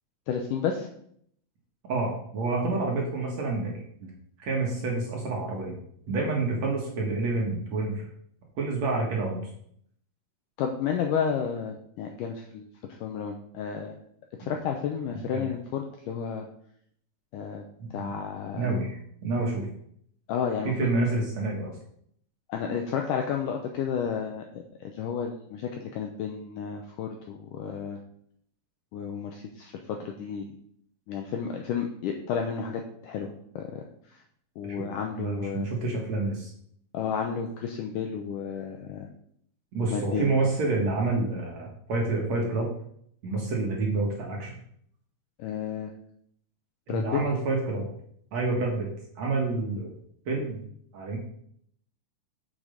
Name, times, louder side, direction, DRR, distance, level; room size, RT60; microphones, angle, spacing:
voice 1, 0.3-0.9 10.6-12.7 13.0-14.0 14.4-16.5 17.3-17.6 17.9-18.8 20.3-20.9 22.5-28.0 28.9-30.5 31.1-33.8 34.1-34.2 34.6-35.7 36.9-39.1 39.9-40.3 45.4-45.9 46.9-47.2, left 7 dB, 80° left, 3 dB, 1.9 m, -32 dB
voice 2, 1.9-4.1 4.4-5.8 6.1-8.0 8.6-9.5 14.4-14.5 15.3-15.4 17.8-18.1 18.5-19.7 20.6-21.8 34.6-34.9 35.2-36.5 39.7-42.7 43.2-44.5 46.9-47.9 48.3-48.9 49.2-49.9 50.3-50.6 50.9-51.2, right 3 dB, 55° right, -1 dB, 2.2 m, -28 dB
7.2 x 6.6 x 5.1 m, 0.67 s
omnidirectional pair, 4.6 m